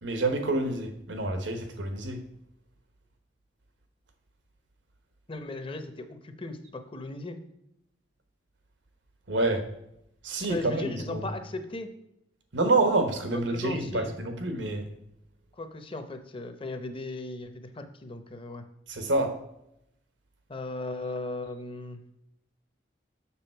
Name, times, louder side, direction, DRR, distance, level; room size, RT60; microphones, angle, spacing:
voice 1, 0.0-2.2 9.3-9.7 10.2-11.3 12.5-14.9 18.9-19.4, right 2 dB, 85° right, 6 dB, 1.2 m, -27 dB
voice 2, 5.3-7.4 10.5-11.9 13.5-14.1 15.6-18.7 20.5-22.0, left 2 dB, 30° left, 8 dB, 0.7 m, -37 dB
7.0 x 6.4 x 4.5 m, 0.79 s
head